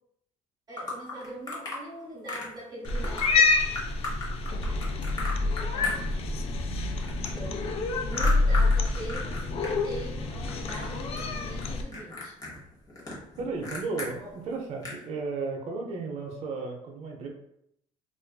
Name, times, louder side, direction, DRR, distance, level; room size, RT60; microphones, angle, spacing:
voice 1, 0.7-3.5 5.7-6.0 7.1-12.4 14.1-14.4, right 1 dB, 30° right, -5 dB, 1.0 m, -42 dB
sound 1, 0.8-1.8 2.3-2.6 2.8-3.3 3.7-6.5 6.8-9.7 10.0-10.9 11.1-11.7 11.9-14.1 14.5-14.6 14.8-15.0, left 2 dB, 30° left, 1.0 m, -36 dB
Cat, 2.8-11.8, left 3 dB, 45° left, 0.4 m, -27 dB
voice 2, 13.4-17.3, right 4 dB, 50° right, 2 dB, 0.5 m, -34 dB
2.4 x 2.4 x 2.2 m, 0.75 s
supercardioid pair, 100°, 14 cm